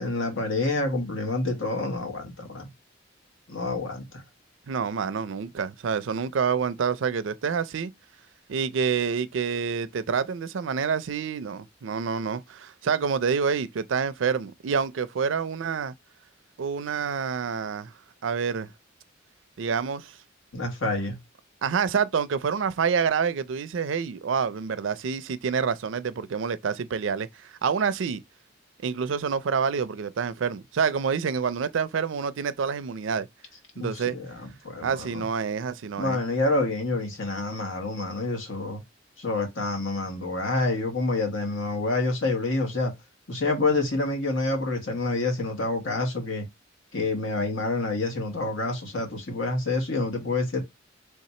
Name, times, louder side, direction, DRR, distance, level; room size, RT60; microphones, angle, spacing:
voice 1, 0.0-2.7 3.5-4.2 20.5-21.2 33.7-35.2 36.0-38.8 39.2-42.9 43.3-46.4 46.9-50.6, left 2 dB, 80° left, 1.4 m, -28 dB
voice 2, 4.7-7.9 8.5-15.9 16.6-17.9 18.2-18.7 19.6-20.2 21.6-28.2 28.8-33.3 33.8-34.2 34.8-36.2, right 6 dB, 70° right, 0.4 m, -27 dB
3.4 x 2.8 x 4.2 m
head